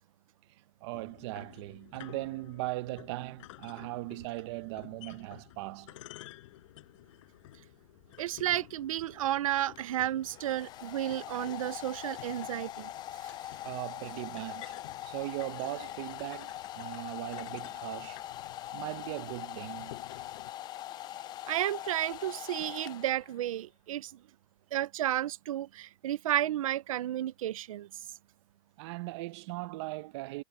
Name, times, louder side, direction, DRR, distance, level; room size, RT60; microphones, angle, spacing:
voice 1, 0.8-6.0 13.6-14.8 15.0-18.2 18.7-20.0 28.8-30.4, right 20 dB, 55° right, 0.9 m, -39 dB
sound 1, 0.9-20.5, left 17 dB, 70° left, 7.9 m, -53 dB
voice 2, 8.2-12.9 13.2-13.3 21.5-24.1 24.7-28.0, right 13 dB, 90° right, 0.7 m, -32 dB
Domestic sounds home sounds, 9.8-23.5, left 13 dB, 25° left, 0.4 m, -42 dB
supercardioid pair, 140°, 17 cm